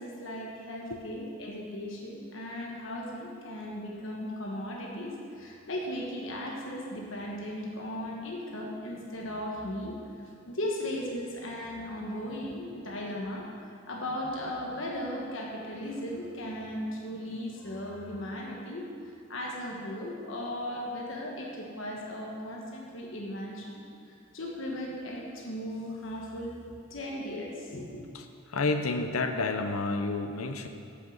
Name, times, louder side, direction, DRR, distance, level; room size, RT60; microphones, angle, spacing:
voice 1, 0.0-10.0 10.5-13.5 13.9-18.8 19.3-23.8 24.3-26.6 26.9-28.0, left 1 dB, 65° left, -2 dB, 1.3 m, -37 dB
voice 2, 28.1-30.7, left 3 dB, 90° left, 7 dB, 0.7 m, -30 dB
7.4 x 6.5 x 7.6 m, 2.5 s
head